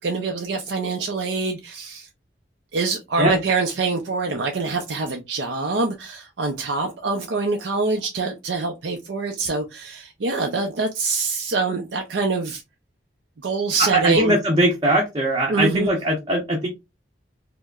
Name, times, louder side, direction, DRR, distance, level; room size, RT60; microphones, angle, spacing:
voice 1, 0.0-2.1 2.7-12.6 13.4-14.4 15.5-15.9, right 3 dB, 75° right, 0.5 m, -25 dB
voice 2, 13.8-16.7, right 1 dB, 25° right, 0.8 m, -20 dB
4.5 x 2.1 x 2.3 m
head